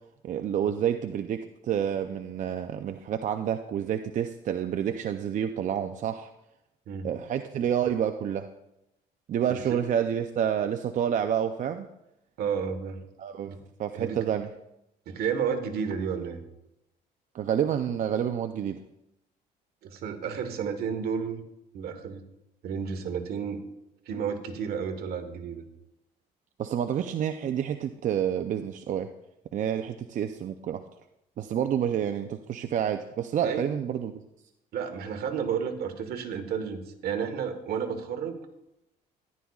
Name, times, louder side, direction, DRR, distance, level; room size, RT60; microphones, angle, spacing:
voice 1, 0.2-6.3 7.0-8.5 9.3-11.9 13.2-13.5 13.8-14.5 17.3-18.8 26.6-29.1 29.5-30.8 31.4-34.1, right 9 dB, 50° right, 8 dB, 0.5 m, -29 dB
voice 2, 12.4-13.0 13.5-13.6 13.9-14.2 15.1-16.4 19.8-21.4 21.7-22.2 22.6-23.6 24.1-25.6 33.4-33.7 34.7-38.4, right 7 dB, 70° right, 7 dB, 1.4 m, -31 dB
14.0 x 11.0 x 2.4 m, 0.86 s
cardioid pair, 110°, 17 cm